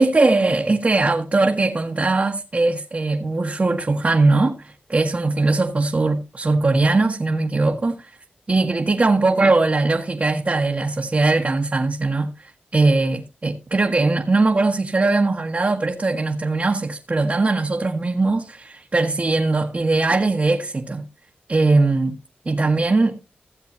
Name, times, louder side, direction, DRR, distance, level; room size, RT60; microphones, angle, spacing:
voice 1, 0.0-8.1 8.5-21.0 21.5-22.2 22.4-23.2, right 3 dB, 45° right, 1.4 m, -20 dB
16.0 x 7.5 x 2.7 m
cardioid pair, 50°, 4 cm